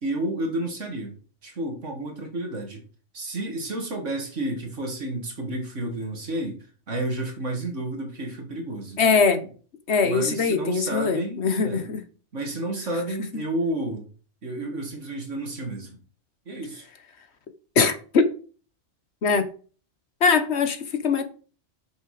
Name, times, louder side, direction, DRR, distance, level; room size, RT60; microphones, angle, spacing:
voice 1, 0.0-2.8 3.1-9.0 10.0-11.9 12.3-14.1 14.4-16.0 16.5-16.9, right 1 dB, 80° right, 2.6 m, -31 dB
voice 2, 9.0-9.4 9.9-12.0 17.7-18.3 19.2-19.5 20.2-21.2, left 5 dB, 65° left, 1.5 m, -22 dB
9.3 x 6.4 x 5.0 m
omnidirectional pair, 1.2 m